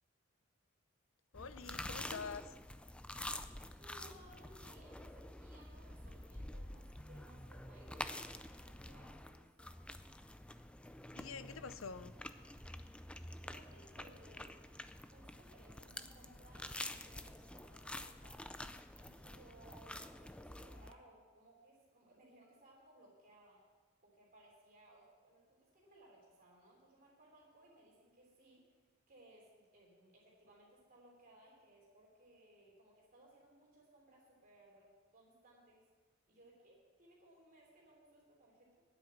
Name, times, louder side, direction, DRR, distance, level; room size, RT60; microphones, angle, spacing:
voice 1, 1.3-2.5 11.1-12.1, left 5 dB, 70° left, 13 dB, 0.6 m, -46 dB
sound 1, 1.3-20.9, left 1 dB, 5° left, 0.4 m, -48 dB
voice 2, 3.8-9.5 13.4-14.5 15.1-18.4 19.0-23.6 24.0-28.8 29.1-35.8 36.3-38.8, right 1 dB, 45° right, -4 dB, 3.1 m, -63 dB
9.5 x 8.2 x 9.3 m, 1.4 s
head